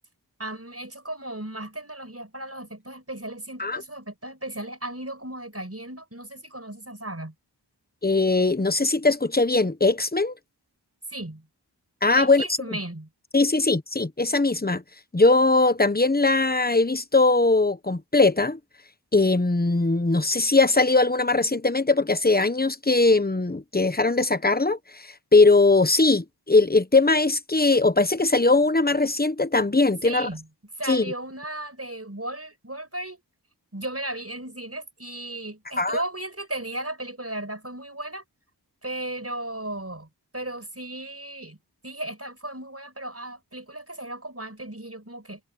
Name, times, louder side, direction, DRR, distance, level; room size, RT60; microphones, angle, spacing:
voice 1, 0.4-7.3 11.1-11.5 12.2-13.1 30.0-30.5 30.8-33.2 33.7-38.2 38.8-40.1 40.3-41.6 41.8-45.4, right 1 dB, 35° right, 5.8 m, -35 dB
voice 2, 8.0-10.3 12.0-12.4 13.3-14.8 15.1-18.6 19.1-24.8 25.3-30.3 30.9-31.1 35.8-36.0, left 3 dB, 20° left, 1.1 m, -20 dB
wide cardioid pair, 50°, 42 cm